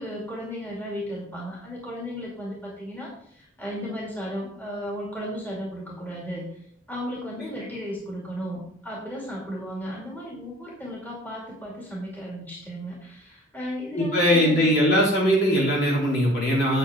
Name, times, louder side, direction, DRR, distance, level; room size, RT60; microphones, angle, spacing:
voice 1, 0.0-6.5 6.9-14.7, equal, 10° left, -5 dB, 2.3 m, -35 dB
voice 2, 13.9-16.8, equal, 55° left, -4 dB, 3.5 m, -20 dB
8.1 x 7.8 x 3.8 m, 0.65 s
head